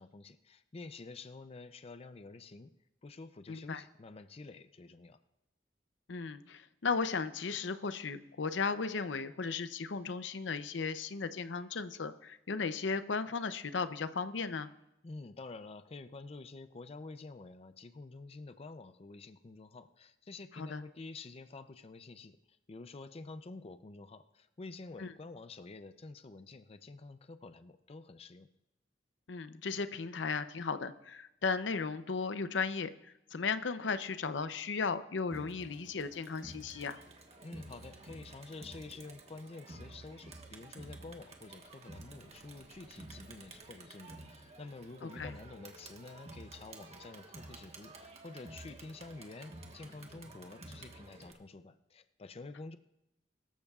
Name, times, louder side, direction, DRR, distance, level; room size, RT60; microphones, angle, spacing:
voice 1, 0.0-2.7 3.0-5.2 15.0-28.5 37.4-52.8, left 3 dB, 35° left, 10 dB, 0.5 m, -49 dB
voice 2, 3.5-3.8 6.1-14.7 20.6-20.8 25.0-25.1 29.3-37.0 45.0-45.3, left 4 dB, 90° left, 12 dB, 0.6 m, -36 dB
Crowd, 35.3-51.3, right 2 dB, 35° right, 1.4 m, -52 dB
23.0 x 13.5 x 2.4 m, 0.86 s
head